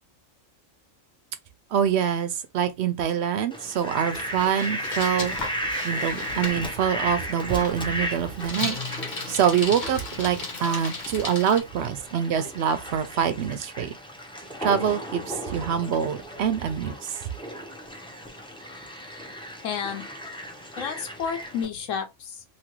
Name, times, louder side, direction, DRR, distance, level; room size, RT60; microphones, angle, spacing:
voice 1, 1.7-5.4 5.8-8.8 9.3-13.9 14.6-17.1, right 8 dB, 65° right, 0.7 m, -25 dB
Fowl, 3.5-21.7, equal, 10° left, 0.3 m, -35 dB
Bicycle, 4.1-11.6, left 3 dB, 45° left, 0.9 m, -36 dB
voice 2, 19.6-20.0 20.8-22.4, left 7 dB, 75° left, 1.1 m, -31 dB
2.8 x 2.5 x 2.9 m
omnidirectional pair, 1.3 m